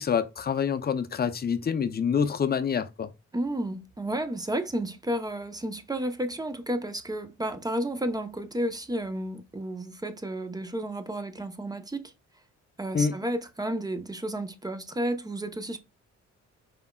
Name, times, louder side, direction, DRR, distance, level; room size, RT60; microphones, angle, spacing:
voice 1, 0.0-3.1 12.9-13.2, left 6 dB, 30° left, 0.6 m, -26 dB
voice 2, 3.3-12.1 12.8-15.8, right 1 dB, 15° right, 0.8 m, -32 dB
5.2 x 3.4 x 2.3 m
cardioid pair, 90°, 30 cm